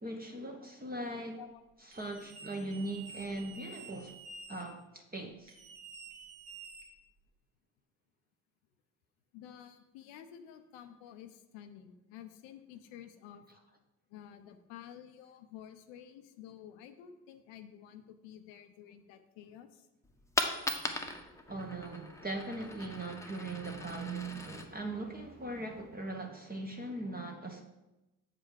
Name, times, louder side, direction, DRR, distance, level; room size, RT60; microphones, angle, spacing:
voice 1, 0.0-1.4 1.9-4.1 4.5-5.5 21.5-27.6, right 2 dB, 20° right, 2 dB, 1.0 m, -40 dB
sound 1, 1.9-4.6 5.5-7.3, right 4 dB, 80° right, 1.3 m, -50 dB
voice 2, 9.3-13.5 14.1-19.9, left 9 dB, 70° left, 8 dB, 0.7 m, -51 dB
Coin (dropping), 20.0-26.0, left 1 dB, 5° left, 1.0 m, -40 dB
7.3 x 5.0 x 4.8 m, 1.0 s
hypercardioid pair, 45°, 47 cm